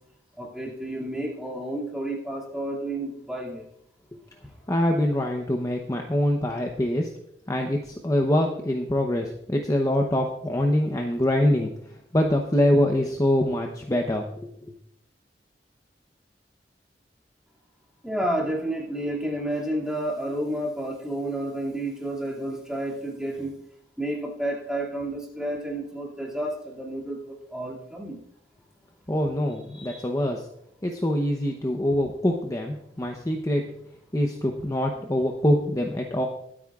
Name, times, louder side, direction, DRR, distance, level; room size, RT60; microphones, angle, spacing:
voice 1, 0.4-3.6 18.0-23.6 24.0-28.2 29.7-30.0 35.0-35.1, right 1 dB, 5° right, -3 dB, 2.3 m, -31 dB
voice 2, 4.7-7.1 7.5-11.7 12.1-14.7 29.1-30.5 30.8-33.7 34.1-36.3, left 1 dB, 20° left, 2 dB, 0.8 m, -24 dB
22.5 x 8.6 x 2.4 m, 0.75 s
head